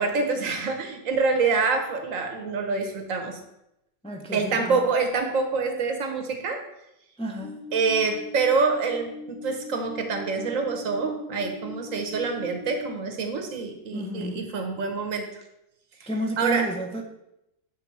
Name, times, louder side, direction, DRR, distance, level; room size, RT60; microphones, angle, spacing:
voice 1, 0.0-3.4 4.3-6.6 7.7-15.4 16.0-16.1 16.4-16.7, right 4 dB, 90° right, 5 dB, 1.4 m, -26 dB
voice 2, 4.0-4.8 7.2-7.7 13.9-14.5 16.1-17.0, right 1 dB, 10° left, 1 dB, 0.4 m, -31 dB
sound 1, 7.4-12.9, left 2 dB, 40° right, 0.9 m, -40 dB
7.4 x 3.5 x 4.6 m, 0.84 s
omnidirectional pair, 1.3 m